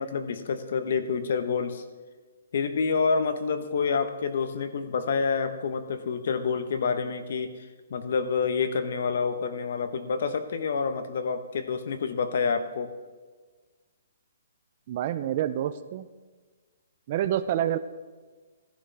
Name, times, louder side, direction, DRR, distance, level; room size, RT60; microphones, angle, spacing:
voice 1, 0.0-1.8 2.5-7.5 7.9-12.9, left 5 dB, 60° left, 10 dB, 1.0 m, -28 dB
voice 2, 14.9-16.1 17.1-17.8, right 11 dB, 40° right, 13 dB, 0.5 m, -27 dB
15.0 x 11.5 x 3.4 m, 1.4 s
hypercardioid pair, 155°, 0 cm